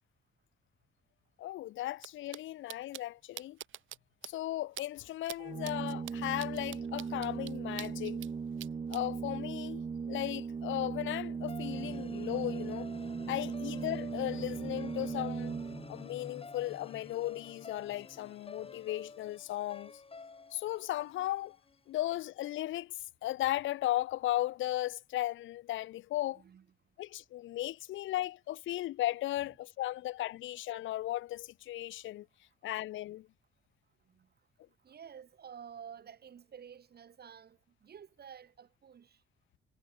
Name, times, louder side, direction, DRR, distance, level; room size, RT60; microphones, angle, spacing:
voice 1, 1.4-3.6 4.2-8.2 8.9-9.8 10.1-12.9 13.3-15.5 15.9-19.9 20.5-21.6 21.9-26.4 27.0-32.3 32.6-33.3, left 15 dB, 75° left, 0.6 m, -36 dB
sound 1, 2.0-2.1 2.3-2.4 2.7-3.0 3.4-4.0 4.2-4.3 4.8-4.9 5.2-5.4 5.6-8.3 8.6-9.0, right 13 dB, 80° right, 4.2 m, -44 dB
Organ, 5.4-16.1, right 5 dB, 30° right, 0.8 m, -38 dB
sound 2, 11.5-21.8, left 4 dB, 30° left, 5.9 m, -50 dB
voice 2, 26.2-27.0 29.4-29.5 34.0-39.2, right 8 dB, 55° right, 5.9 m, -52 dB
cardioid pair, 90°, 20 cm